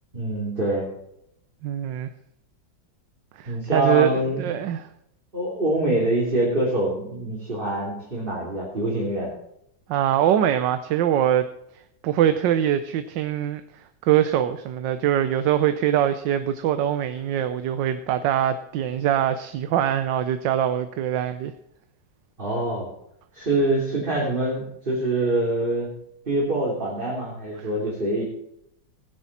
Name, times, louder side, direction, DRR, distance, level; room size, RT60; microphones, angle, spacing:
voice 1, 0.1-0.9 3.5-4.6 5.3-9.3 22.4-22.9 23.3-25.9 26.3-28.2, right 1 dB, 25° right, -5 dB, 3.1 m, -25 dB
voice 2, 1.6-2.1 3.4-4.9 9.9-11.5 12.0-13.6 14.0-21.5 27.6-27.7, right 10 dB, 75° right, 10 dB, 1.3 m, -23 dB
16.5 x 10.0 x 4.2 m, 0.76 s
omnidirectional pair, 2.1 m